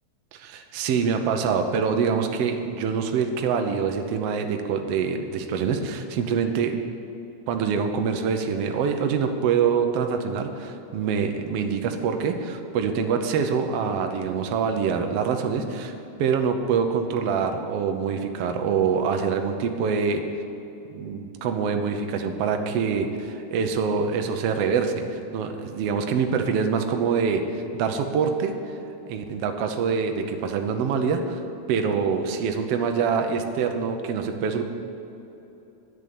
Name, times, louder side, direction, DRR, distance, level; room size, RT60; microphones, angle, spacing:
voice 1, 0.3-6.8 7.5-15.9 16.2-20.2 20.9-27.4 27.7-28.5 29.1-31.4 31.7-34.6, right 6 dB, 70° right, 5 dB, 1.6 m, -25 dB
10.0 x 8.9 x 7.0 m, 3.0 s
omnidirectional pair, 3.5 m